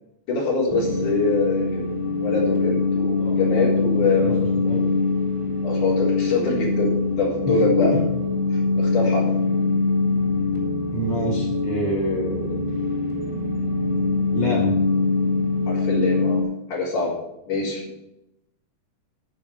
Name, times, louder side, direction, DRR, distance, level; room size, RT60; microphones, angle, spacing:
voice 1, 0.3-1.8 2.2-4.4 5.6-6.9 7.2-7.9 8.5-9.3 15.7-16.4 16.7-17.1 17.5-17.8, left 3 dB, 75° left, -5 dB, 5.5 m, -24 dB
sound 1, 0.7-16.4, left 3 dB, 10° left, 3.5 m, -23 dB
voice 2, 7.5-8.0 10.9-12.6 14.3-14.7, equal, 35° left, -2 dB, 5.4 m, -27 dB
12.5 x 7.1 x 7.8 m, 0.86 s
omnidirectional pair, 3.6 m